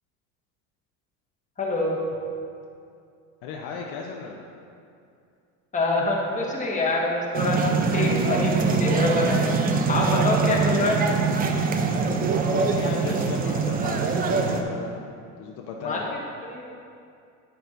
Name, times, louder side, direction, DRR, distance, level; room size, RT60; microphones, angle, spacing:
voice 1, 1.6-2.0 5.7-7.6 7.9-9.4 9.9-11.0 15.8-16.0 16.5-16.6, left 2 dB, 15° left, -3 dB, 1.3 m, -25 dB
voice 2, 3.4-4.4 12.5-15.0 15.4-16.0, left 5 dB, 55° left, 0 dB, 0.8 m, -35 dB
sound 1, 7.3-14.6, right 4 dB, 20° right, 0.4 m, -23 dB
9.6 x 6.7 x 2.6 m, 2.5 s
supercardioid pair, 105°, 46 cm